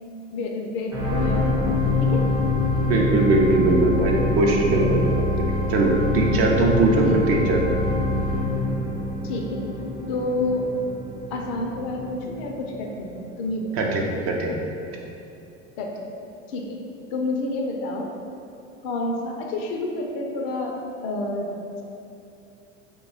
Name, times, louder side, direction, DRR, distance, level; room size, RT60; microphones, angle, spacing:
voice 1, 0.3-1.6 2.0-2.3 7.0-7.4 9.2-9.6 10.1-10.7 11.3-13.7 15.8-16.1 16.5-16.8 17.1-18.1 18.8-21.5, left 2 dB, 55° left, 1 dB, 0.5 m, -29 dB
sound 1, 0.9-13.3 13.9-14.0, left 2 dB, 90° right, 0.9 m, -25 dB
voice 2, 2.8-5.3 5.7-7.8 13.8-14.6, right 2 dB, 40° right, 0 dB, 0.5 m, -21 dB
2.6 x 2.3 x 3.9 m, 2.6 s
figure-of-eight pair, 70°, 37 cm